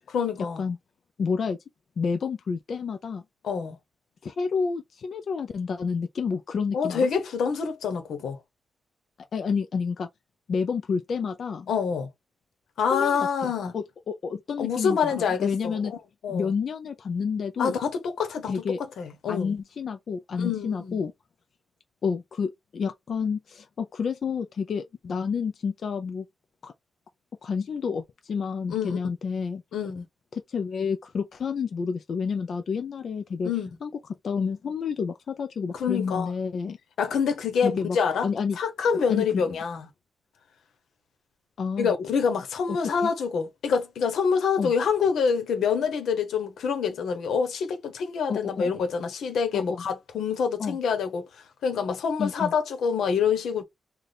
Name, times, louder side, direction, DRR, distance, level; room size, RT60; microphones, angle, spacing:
voice 1, 0.1-0.6 3.4-3.8 6.7-8.4 11.7-12.1 12.8-13.7 14.6-15.8 16.2-16.5 17.6-19.6 20.4-21.0 28.7-29.0 29.7-30.1 33.4-33.7 35.7-36.3 37.0-38.3 38.6-39.9 41.8-51.3 51.6-53.6, left 6 dB, 80° left, 1.0 m, -26 dB
voice 2, 1.2-1.6 2.0-3.2 4.2-7.1 9.3-10.1 10.5-11.7 12.9-15.9 16.3-17.8 18.5-18.8 19.3-21.1 22.0-26.3 26.6-26.7 27.4-29.6 30.3-33.5 33.8-33.9 34.2-36.8 37.6-38.0 38.2-38.6 39.1-39.6 41.6-41.9 42.7-42.8 43.0-43.1 44.6-44.7 48.3-48.7 49.5-49.8 50.6-50.8 52.2-52.5, left 5 dB, 50° left, 0.4 m, -29 dB
3.3 x 2.3 x 4.0 m
wide cardioid pair, 160°, 0 cm